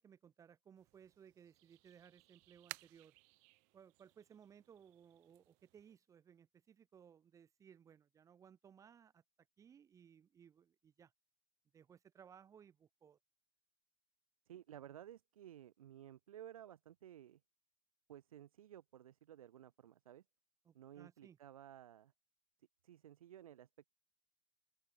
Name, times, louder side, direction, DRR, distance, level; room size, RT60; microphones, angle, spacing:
voice 1, 0.0-3.1 3.7-9.2 9.6-11.1 11.7-13.2 20.7-21.4, right 8 dB, 20° right, 1.9 m, -62 dB
sound 1, 0.8-6.0, right 35 dB, 45° right, 3.2 m, -59 dB
voice 2, 14.5-17.4 18.1-20.2 20.7-22.1 22.8-23.7, right 11 dB, 90° right, 7.3 m, -55 dB
open air
supercardioid pair, 150°, 17 cm